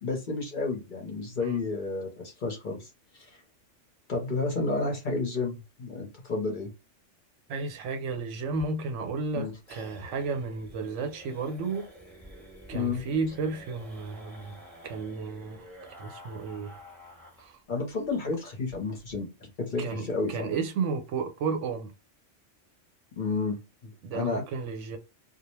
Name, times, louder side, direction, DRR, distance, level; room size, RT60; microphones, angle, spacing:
voice 1, 0.0-2.9 3.1-3.4 4.1-6.7 9.3-9.5 12.7-13.0 17.7-19.3 19.6-20.5 23.2-24.4, left 3 dB, 50° left, 0.7 m, -31 dB
voice 2, 7.5-11.9 12.7-14.6 14.8-15.7 16.0-16.7 17.4-17.6 19.8-21.9 24.0-25.0, right 4 dB, 80° right, 0.9 m, -33 dB
sound 1, 8.5-17.6 17.9-18.0 18.3-18.4 18.7-19.1, equal, ahead, 0.7 m, -50 dB
2.3 x 2.0 x 3.0 m
omnidirectional pair, 1.3 m